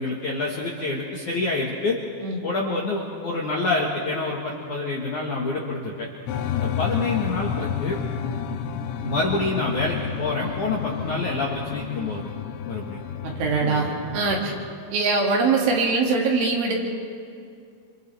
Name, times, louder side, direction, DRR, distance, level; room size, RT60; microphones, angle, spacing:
voice 1, 0.0-2.0 2.4-6.1 6.5-8.0 9.0-12.3 12.7-13.0 13.6-13.9, left 3 dB, 65° left, -3 dB, 2.0 m, -27 dB
sound 1, 6.3-14.7, left 7 dB, 85° left, 3.4 m, -31 dB
voice 2, 13.2-14.5 14.9-16.9, right 4 dB, 70° right, -2 dB, 4.8 m, -22 dB
27.5 x 27.5 x 3.5 m, 2.3 s
omnidirectional pair, 5.8 m